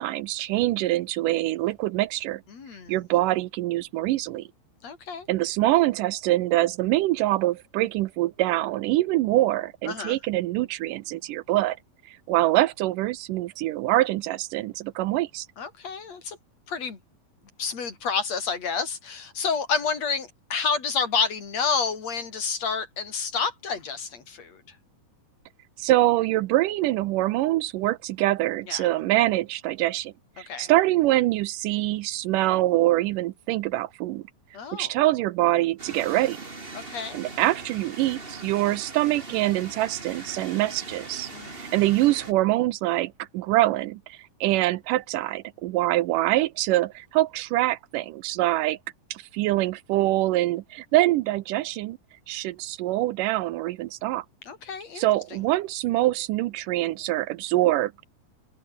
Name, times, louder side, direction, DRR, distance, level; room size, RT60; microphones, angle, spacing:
voice 1, 0.0-2.4 2.9-4.5 5.3-11.8 12.1-15.5 25.8-34.2 34.7-36.4 37.1-41.3 41.6-48.8 49.1-52.0 52.3-54.3 55.0-57.9, right 16 dB, 75° right, 2.0 m, -24 dB
voice 2, 2.5-3.0 4.8-5.3 9.9-10.2 15.6-16.4 16.7-17.0 17.6-24.6 28.7-28.9 30.5-30.7 34.5-34.9 36.7-37.2 41.3-41.6 54.5-55.0, left 5 dB, 45° left, 4.9 m, -29 dB
sound 1, 35.8-42.3, right 3 dB, 20° right, 2.0 m, -41 dB
omnidirectional pair, 4.3 m